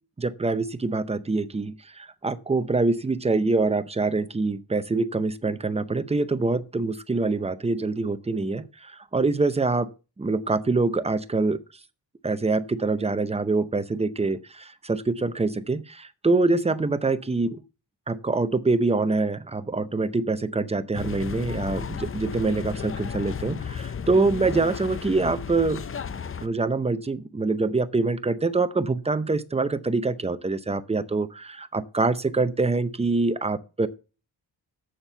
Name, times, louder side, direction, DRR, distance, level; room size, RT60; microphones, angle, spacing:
voice 1, 0.2-9.9 10.2-11.6 12.2-17.6 18.1-25.8 26.4-33.9, right 3 dB, 15° right, 0.6 m, -25 dB
sound 1, 20.9-26.5, left 7 dB, 30° left, 0.5 m, -34 dB
7.4 x 7.1 x 6.8 m
wide cardioid pair, 140°, 43 cm